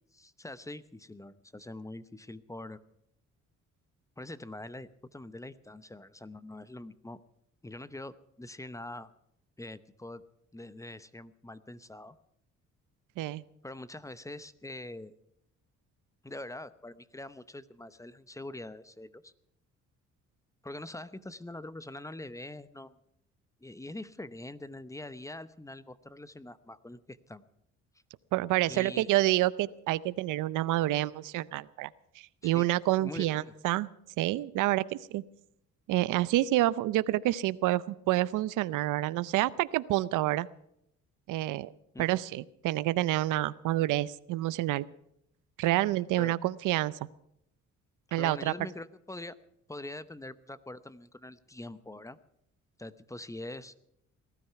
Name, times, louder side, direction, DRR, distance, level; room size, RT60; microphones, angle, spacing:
voice 1, 0.1-2.8 4.2-7.2 7.6-9.1 9.6-10.2 10.5-12.1 13.6-15.1 16.2-19.3 20.6-23.0 23.6-27.4 28.7-29.1 32.4-32.7 33.0-33.5 41.9-42.1 46.2-46.4 48.2-49.4 49.7-52.2 52.8-53.7, left 1 dB, 10° left, 15 dB, 0.8 m, -44 dB
voice 2, 28.3-31.9 32.2-33.9 34.2-35.2 35.9-40.5 41.3-41.7 42.0-44.9 45.6-46.9 48.1-48.5, right 16 dB, 90° right, 19 dB, 0.6 m, -28 dB
19.0 x 13.0 x 5.8 m, 0.76 s
cardioid pair, 90°, 30 cm